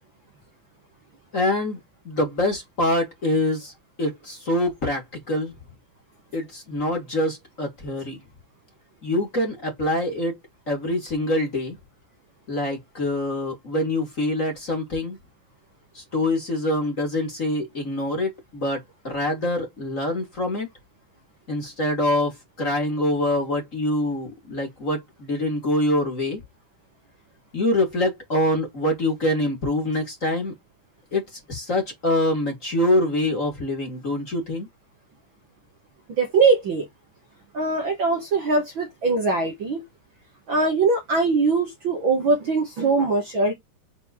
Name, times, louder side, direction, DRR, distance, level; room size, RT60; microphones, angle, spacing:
voice 1, 1.3-1.8 2.0-3.7 4.0-5.0 5.3-5.5 6.3-8.2 9.0-10.3 10.7-11.8 12.5-15.2 15.9-20.7 21.5-22.3 22.6-26.4 27.5-30.5 31.1-31.2 31.5-34.7, left 1 dB, 25° left, 2.8 m, -25 dB
voice 2, 36.2-36.9 37.5-39.8 40.5-43.5, right 3 dB, 50° right, 1.8 m, -21 dB
7.1 x 4.2 x 3.1 m
omnidirectional pair, 3.5 m